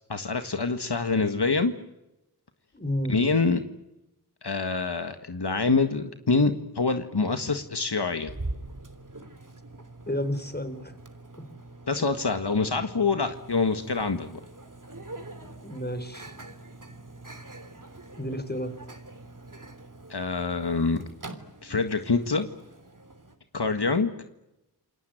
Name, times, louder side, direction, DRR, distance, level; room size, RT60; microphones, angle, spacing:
voice 1, 0.1-1.7 3.1-3.6 4.4-8.3 11.9-14.4 20.1-21.0 21.6-22.5 23.5-24.1, left 4 dB, 75° left, 8 dB, 1.8 m, -25 dB
voice 2, 2.7-3.2 10.1-10.9 11.5-11.6 12.0-12.1 15.6-16.3 18.2-18.8, equal, 25° left, 11 dB, 4.2 m, -31 dB
Microwave oven, 8.3-23.4, right 2 dB, 50° right, 3.3 m, -44 dB
28.5 x 22.0 x 9.2 m, 0.93 s
wide cardioid pair, 45°, 40 cm